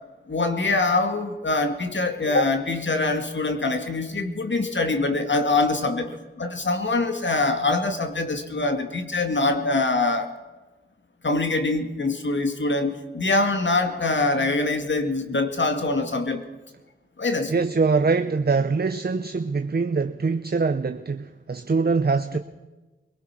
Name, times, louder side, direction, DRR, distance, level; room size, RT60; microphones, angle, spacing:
voice 1, 0.3-10.3 11.2-16.4 17.2-17.6 22.3-22.4, left 3 dB, 65° left, 6 dB, 2.2 m, -24 dB
voice 2, 17.5-22.4, right 4 dB, 50° right, 9 dB, 0.8 m, -23 dB
23.0 x 18.5 x 6.1 m, 1.2 s
cardioid pair, 45°, 21 cm